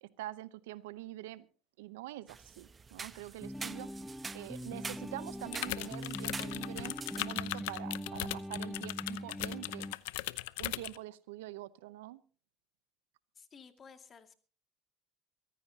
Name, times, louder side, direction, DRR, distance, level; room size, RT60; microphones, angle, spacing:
voice 1, 0.0-1.5 1.8-3.9 4.3-9.9 10.6-12.2, right 16 dB, 80° right, 16 dB, 0.8 m, -45 dB
sound 1, 2.3-7.3, right 5 dB, 25° right, 1.0 m, -46 dB
sound 2, 3.4-9.9, equal, 5° left, 0.8 m, -42 dB
sound 3, 5.5-11.0, left 20 dB, 80° left, 0.7 m, -38 dB
voice 2, 13.4-14.3, left 6 dB, 40° left, 7 dB, 2.3 m, -55 dB
23.5 x 15.5 x 2.9 m, 0.38 s
hypercardioid pair, 80°, 0 cm